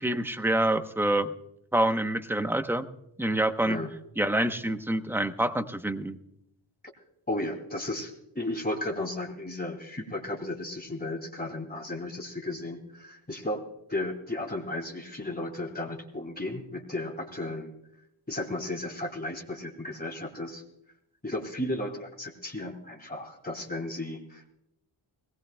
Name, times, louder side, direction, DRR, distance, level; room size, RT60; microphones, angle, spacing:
voice 1, 0.0-1.3 1.7-2.9 3.2-3.8 4.2-6.2, right 1 dB, 5° right, 9 dB, 0.8 m, -26 dB
voice 2, 7.3-17.7 18.3-20.6 21.2-24.5, left 1 dB, 20° left, 1 dB, 2.4 m, -34 dB
20.0 x 19.0 x 2.2 m, 0.82 s
wide cardioid pair, 130°, 47 cm